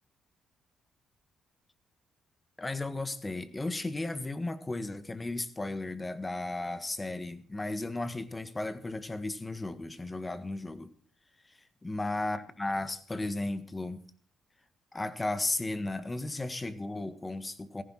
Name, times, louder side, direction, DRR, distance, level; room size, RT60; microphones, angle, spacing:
voice 1, 2.6-10.9 11.8-14.0 14.9-17.8, left 2 dB, 20° left, 1.6 m, -35 dB
16.5 x 15.0 x 4.4 m
cardioid pair, 90°, 0 cm